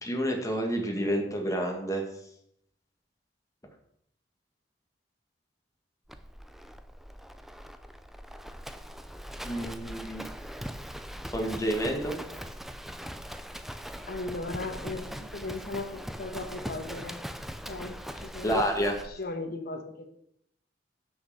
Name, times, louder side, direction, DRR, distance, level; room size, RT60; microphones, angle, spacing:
voice 1, 0.0-2.0 9.4-10.2 11.3-12.2 18.4-18.9, equal, 20° left, 2 dB, 1.7 m, -29 dB
Livestock farm animals working animals, 6.1-19.1, equal, ahead, 0.5 m, -41 dB
voice 2, 14.1-17.2 17.7-20.1, left 2 dB, 60° left, 6 dB, 1.3 m, -37 dB
6.8 x 6.5 x 6.9 m, 0.73 s
head